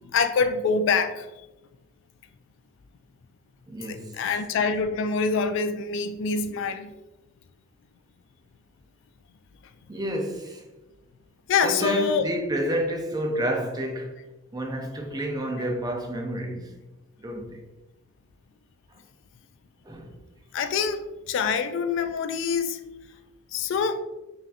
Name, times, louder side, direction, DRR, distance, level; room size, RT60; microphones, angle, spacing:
voice 1, 0.1-1.3 3.9-6.9 11.5-12.3 20.5-22.8 23.5-24.0, left 5 dB, 65° left, 0.3 m, -25 dB
voice 2, 3.7-4.1 9.9-10.6 11.6-14.1 14.5-16.7 17.2-17.6 19.9-20.1, right 1 dB, 20° right, 0.6 m, -29 dB
5.5 x 2.6 x 2.6 m
head